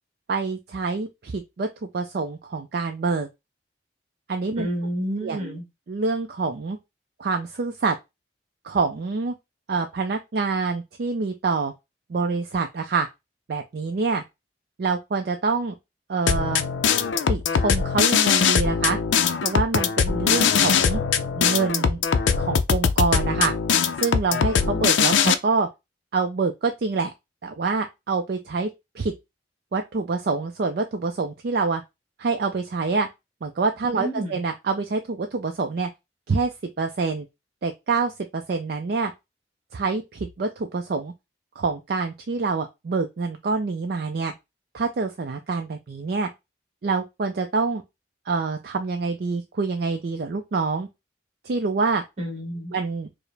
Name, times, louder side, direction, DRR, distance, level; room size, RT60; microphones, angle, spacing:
voice 1, 0.3-3.3 4.3-4.7 5.2-5.5 5.9-6.8 7.2-8.0 8.6-9.3 9.7-11.7 12.1-13.1 13.5-14.2 14.8-15.7 16.1-16.6 17.3-19.0 19.4-21.0 21.4-22.0 22.4-23.5 24.0-25.7 26.1-27.1 27.4-28.7 28.9-29.1 29.7-31.8 32.2-33.1 33.4-35.9 36.3-37.3 37.6-39.1 39.7-41.1 41.6-44.3 44.7-46.3 46.8-47.8 48.3-50.9 51.4-52.0 52.7-53.3, right 4 dB, 55° right, 0.4 m, -26 dB
voice 2, 4.6-5.7 33.9-34.4 52.2-52.7, right 1 dB, 35° right, 1.3 m, -29 dB
sound 1, 16.3-25.3, left 6 dB, 80° left, 0.4 m, -21 dB
4.6 x 2.0 x 3.3 m
head